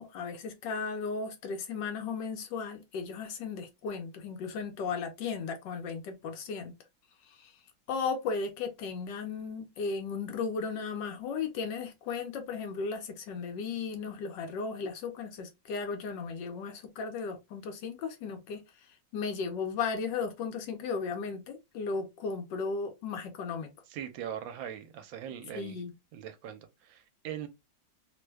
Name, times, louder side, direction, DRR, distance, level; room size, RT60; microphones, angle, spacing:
voice 1, 0.0-6.8 7.2-7.6 7.9-23.7 25.5-25.9, left 5 dB, 75° left, 1.2 m, -35 dB
voice 2, 23.9-25.8 26.1-27.5, right 9 dB, 75° right, 1.3 m, -41 dB
3.2 x 2.1 x 3.2 m
omnidirectional pair, 2.1 m